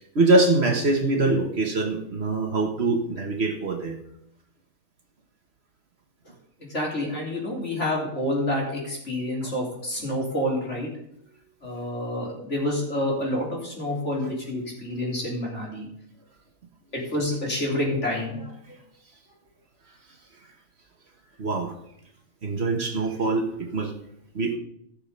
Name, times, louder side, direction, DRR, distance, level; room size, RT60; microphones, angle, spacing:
voice 1, 0.2-4.0 9.4-9.5 21.4-21.7 22.4-23.9 24.4-24.6, right 2 dB, 50° right, 3 dB, 1.6 m, -23 dB
voice 2, 6.6-10.9 11.6-15.9 16.9-18.5, left 1 dB, 55° left, -3 dB, 3.9 m, -28 dB
15.5 x 6.7 x 5.4 m, 0.75 s
omnidirectional pair, 1.4 m